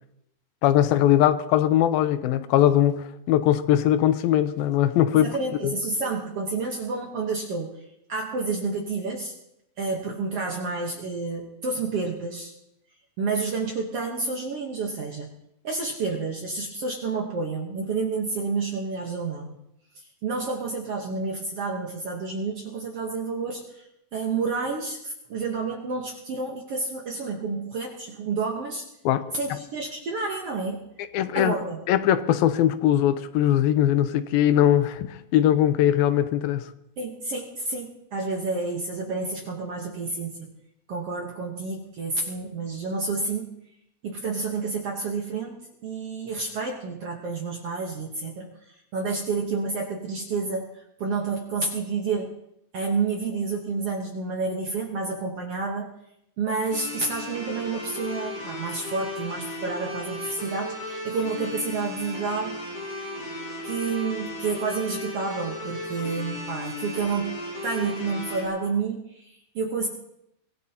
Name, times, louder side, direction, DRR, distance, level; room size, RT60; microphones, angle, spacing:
voice 1, 0.6-5.4 5.6-5.7 29.1-29.2 29.5-29.6 31.1-31.6 31.9-36.7, left 11 dB, 85° left, 12 dB, 2.6 m, -21 dB
voice 2, 5.1-7.8 8.1-9.3 9.8-12.5 13.2-15.3 15.6-19.5 19.9-28.9 29.3-30.8 31.3-31.8 37.0-40.5 40.9-43.5 44.0-52.3 52.7-55.9 56.4-62.6 63.6-69.9, right 4 dB, 60° right, 1 dB, 1.6 m, -30 dB
sound 1, 56.7-68.5, left 2 dB, 45° left, 6.7 m, -35 dB
24.0 x 17.0 x 2.9 m, 0.81 s
omnidirectional pair, 4.1 m